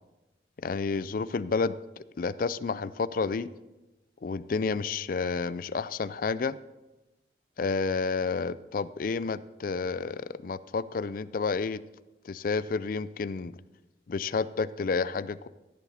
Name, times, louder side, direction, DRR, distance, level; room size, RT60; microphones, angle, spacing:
voice 1, 0.6-1.7 2.2-3.5 4.2-6.6 7.6-11.8 12.2-13.6 14.1-15.5, left 4 dB, 50° left, 16 dB, 0.4 m, -30 dB
15.0 x 9.9 x 4.2 m, 1.0 s
head